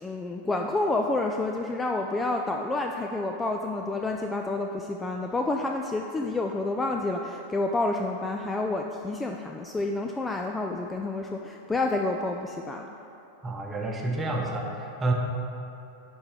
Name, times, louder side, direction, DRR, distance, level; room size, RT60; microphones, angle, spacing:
voice 1, 0.0-12.9, left 2 dB, 10° left, 2 dB, 0.3 m, -29 dB
voice 2, 13.4-15.1, right 2 dB, 15° right, 0 dB, 1.0 m, -29 dB
10.5 x 4.4 x 3.7 m, 2.8 s
figure-of-eight pair, 90°, 0 cm